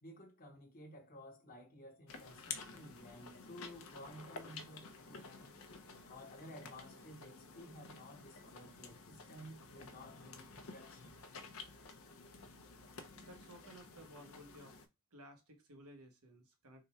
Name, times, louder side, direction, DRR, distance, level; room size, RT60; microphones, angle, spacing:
voice 1, 0.0-5.6 6.0-11.2, equal, 40° left, 1.2 m, -54 dB
sound 1, 2.1-14.9, left 4 dB, 70° left, 0.6 m, -52 dB
voice 2, 13.2-14.8 15.1-16.9, equal, 90° right, 1.1 m, -56 dB
3.7 x 2.3 x 4.2 m
head